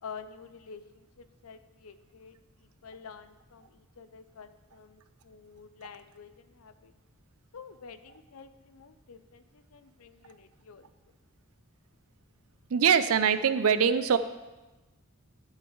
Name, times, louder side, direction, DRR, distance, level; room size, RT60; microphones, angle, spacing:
voice 1, 0.0-6.9 7.5-10.9, left 6 dB, 80° left, 12 dB, 0.5 m, -49 dB
voice 2, 12.7-14.2, right 7 dB, 80° right, 12 dB, 0.5 m, -23 dB
12.0 x 7.4 x 3.2 m, 1.1 s
head